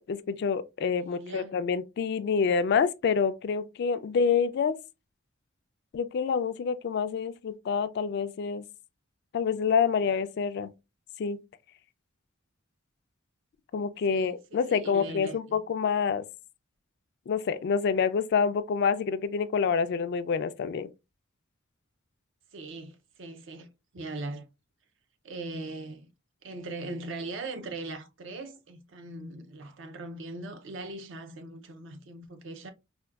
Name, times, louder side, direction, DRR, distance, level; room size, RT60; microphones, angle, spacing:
voice 1, 0.0-4.8 5.9-8.6 9.3-10.7 11.2-11.4 13.7-16.2 17.3-20.9, left 6 dB, 55° left, 0.3 m, -27 dB
voice 2, 0.9-1.6 14.1-15.6 22.5-24.5 25.2-26.1 26.4-32.7, right 2 dB, 65° right, 0.5 m, -40 dB
4.3 x 2.2 x 2.3 m
head